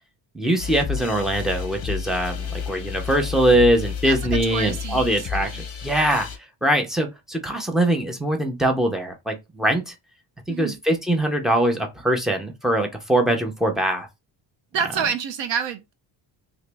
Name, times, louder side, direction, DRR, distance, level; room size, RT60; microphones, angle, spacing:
voice 1, 0.3-6.3 6.6-9.9 10.5-14.1, right 1 dB, ahead, 0.5 m, -22 dB
sound 1, 0.6-6.4, left 7 dB, 30° left, 0.8 m, -31 dB
voice 2, 4.0-5.6 10.5-10.8 14.7-15.9, right 7 dB, 65° right, 0.6 m, -28 dB
3.1 x 3.0 x 3.3 m
cardioid pair, 165°, 48 cm